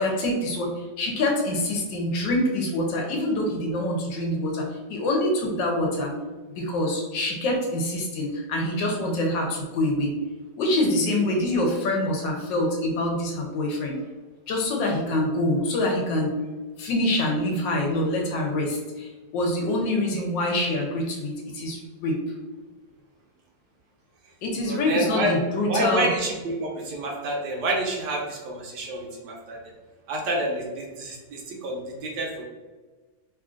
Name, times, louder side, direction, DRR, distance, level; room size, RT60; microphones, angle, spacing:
voice 1, 0.0-6.1 6.6-10.1 10.6-14.0 14.5-16.3 16.8-19.1 19.3-22.2 24.4-26.1, left 1 dB, 75° left, 0 dB, 1.3 m, -25 dB
voice 2, 24.7-29.6 30.1-32.4, right 1 dB, 75° right, 0 dB, 1.1 m, -28 dB
3.2 x 2.4 x 2.4 m, 1.3 s
omnidirectional pair, 2.0 m